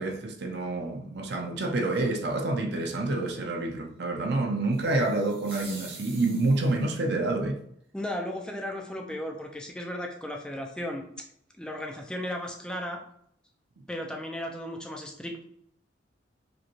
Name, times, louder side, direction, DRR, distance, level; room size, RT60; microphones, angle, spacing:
voice 1, 0.0-7.6, right 2 dB, 60° right, 0.6 m, -28 dB
sound 1, 4.7-6.9, right 2 dB, 30° right, 1.0 m, -46 dB
voice 2, 7.9-11.0 11.6-13.0 13.9-15.4, left 1 dB, 5° left, 0.4 m, -35 dB
5.0 x 2.2 x 3.0 m
head